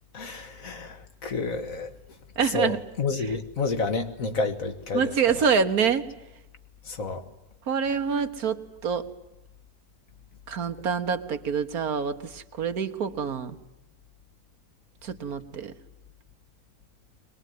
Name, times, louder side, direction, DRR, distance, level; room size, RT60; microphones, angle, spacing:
voice 1, 0.1-1.9 2.4-5.1 6.9-7.3, left 4 dB, 60° left, 7 dB, 2.1 m, -30 dB
voice 2, 2.4-2.8 4.9-6.1 7.7-9.1 10.5-13.6 15.0-15.7, right 6 dB, 75° right, 9 dB, 1.7 m, -26 dB
22.5 x 20.5 x 9.4 m, 0.97 s
omnidirectional pair, 1.6 m